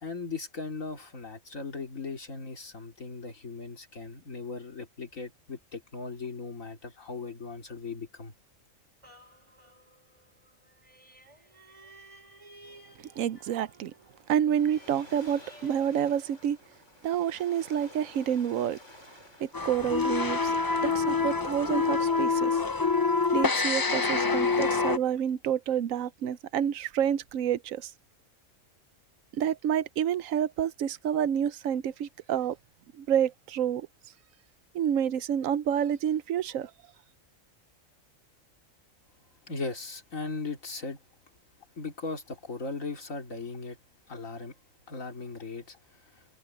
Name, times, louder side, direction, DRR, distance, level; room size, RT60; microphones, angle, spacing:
voice 1, 0.0-8.3 39.5-41.0 41.8-43.8 44.1-44.6 44.9-46.4, left 4 dB, 90° left, 3.3 m, -38 dB
sound 1, 9.0-16.9 17.4-17.5, right 1 dB, 25° right, 5.0 m, -55 dB
voice 2, 13.2-13.9 14.3-16.6 17.0-18.8 19.4-22.6 23.3-27.9 29.3-32.6 33.0-33.9 34.7-36.7, right 9 dB, 90° right, 1.1 m, -28 dB
Waves surf, 14.0-20.8, left 1 dB, 65° left, 7.7 m, -53 dB
sound 2, 19.5-25.0, left 4 dB, 30° left, 0.4 m, -26 dB
omnidirectional pair, 1.3 m